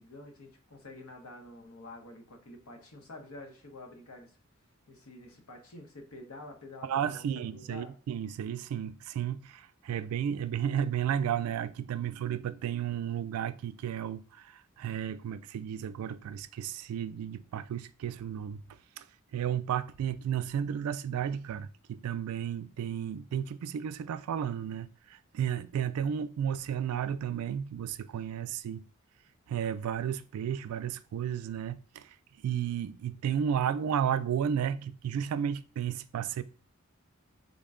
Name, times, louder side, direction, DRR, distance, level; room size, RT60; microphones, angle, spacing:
voice 1, 0.0-4.4 4.9-7.9, left 2 dB, 80° left, 0.9 m, -48 dB
voice 2, 6.8-18.6 19.0-19.1 19.3-28.8 29.5-32.2 32.4-36.4, right 9 dB, 90° right, 0.3 m, -33 dB
3.7 x 2.2 x 3.6 m
head